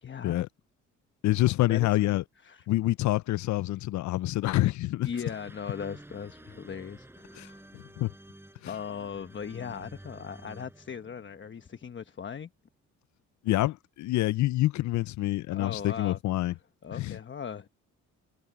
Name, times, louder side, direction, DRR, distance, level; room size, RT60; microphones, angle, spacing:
voice 1, 0.0-0.5 1.7-2.7 5.0-7.6 8.7-12.5 15.5-16.5 16.8-17.7, left 7 dB, 40° left, 1.2 m, -39 dB
voice 2, 1.2-2.2 2.7-5.1 7.4-7.5 7.7-8.1 13.4-16.5 16.9-17.2, left 16 dB, 70° left, 0.5 m, -27 dB
sound 1, 5.1-12.1, right 1 dB, 10° right, 4.8 m, -51 dB
cardioid pair, 90°, 30 cm